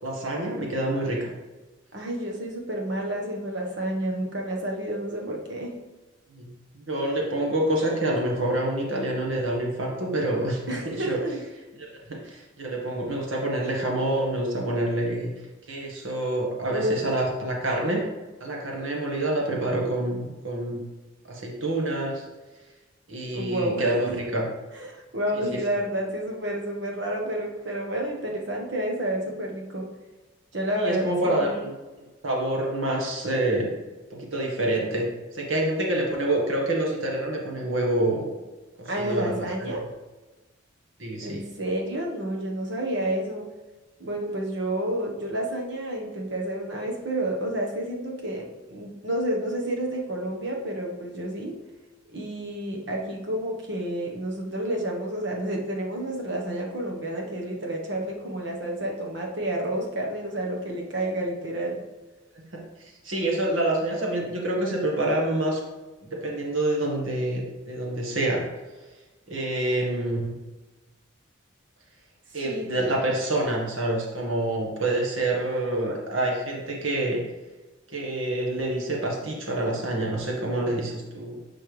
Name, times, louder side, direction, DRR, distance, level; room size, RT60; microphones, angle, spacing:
voice 1, 0.0-1.3 6.3-6.5 6.7-11.2 11.8-15.3 15.7-18.0 18.4-20.8 21.3-22.2 23.1-24.4 25.3-25.4 30.8-31.7 32.2-33.7 34.1-35.1 35.3-38.3 38.8-39.7 41.0-41.4 62.3-62.6 63.0-65.6 66.2-68.4 69.3-70.3 72.3-77.2 77.9-81.4, right 1 dB, 75° right, -1 dB, 1.6 m, -27 dB
voice 2, 1.9-5.8 10.7-11.4 16.7-17.0 23.3-24.2 24.7-29.9 30.5-31.6 38.9-39.8 41.2-43.5 44.0-51.6 52.1-61.8 72.4-72.9, right 1 dB, 55° right, 0 dB, 1.3 m, -30 dB
10.5 x 4.4 x 3.3 m, 1.2 s
head